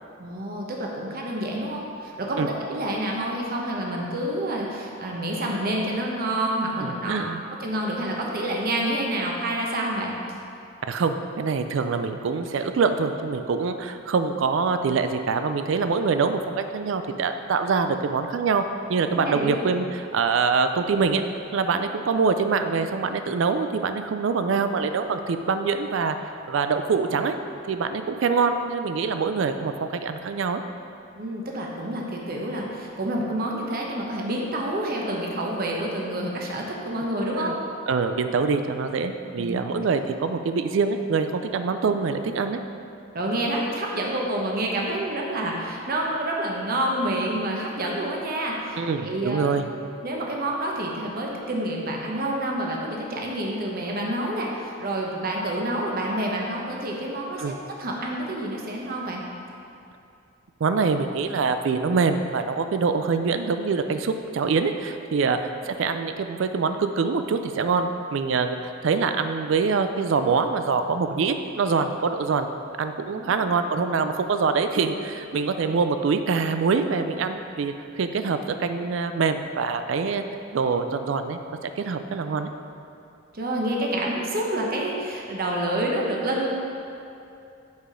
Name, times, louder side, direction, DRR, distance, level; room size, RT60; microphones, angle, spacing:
voice 1, 0.2-7.2 7.6-10.1 19.1-19.6 31.2-37.5 39.4-39.6 43.1-49.4 50.0-59.2 73.1-73.5 83.3-86.5, right 1 dB, 50° right, -1 dB, 0.9 m, -28 dB
voice 2, 6.8-7.4 10.8-18.6 18.9-21.2 21.5-26.2 26.5-27.4 27.7-30.6 37.4-37.5 37.9-42.6 48.8-49.7 57.4-57.6 60.6-72.5 72.8-80.2 80.5-82.5, right 5 dB, 65° right, 8 dB, 0.4 m, -24 dB
8.0 x 4.9 x 4.9 m, 2.6 s
head